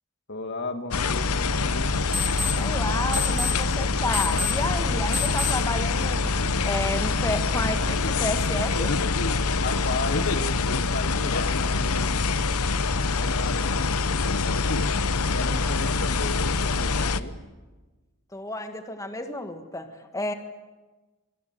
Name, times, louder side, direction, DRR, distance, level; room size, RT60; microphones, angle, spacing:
voice 1, 0.3-2.0 9.5-12.5 13.2-14.5 15.2-17.4, left 2 dB, 55° left, 7 dB, 2.3 m, -35 dB
sound 1, 0.9-17.2, left 4 dB, 75° left, 0.9 m, -25 dB
sound 2, 1.9-8.4, left 3 dB, 20° right, 3.7 m, -33 dB
voice 2, 2.5-6.4 6.6-8.9 18.3-20.3, left 2 dB, 15° left, 7 dB, 1.6 m, -31 dB
26.0 x 23.5 x 7.7 m, 1.2 s
head